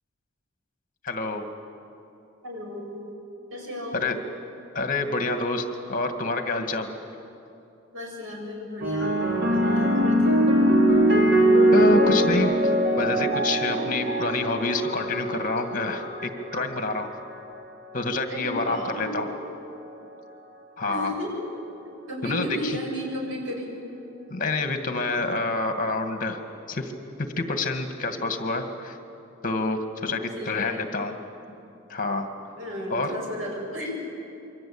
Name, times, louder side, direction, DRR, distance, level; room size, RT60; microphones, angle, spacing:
voice 1, 1.0-1.4 3.9-4.2 4.7-6.9 11.7-12.6 13.0-17.1 17.9-19.3 20.8-21.1 22.2-22.8 24.3-26.4 26.7-26.9 27.2-29.0 29.4-31.2 31.9-32.3 32.9-33.1, left 2 dB, 45° left, 6 dB, 2.1 m, -27 dB
voice 2, 2.4-3.0 3.5-4.1 6.9-7.0 7.9-10.4 18.3-19.4 20.9-21.5 22.1-23.8 30.0-30.8 32.6-34.0, left 1 dB, 80° right, 0 dB, 7.9 m, -34 dB
sound 1, 8.8-17.4 18.3-18.7, right 1 dB, 60° right, 3.2 m, -22 dB
28.0 x 24.0 x 8.8 m, 2.8 s
head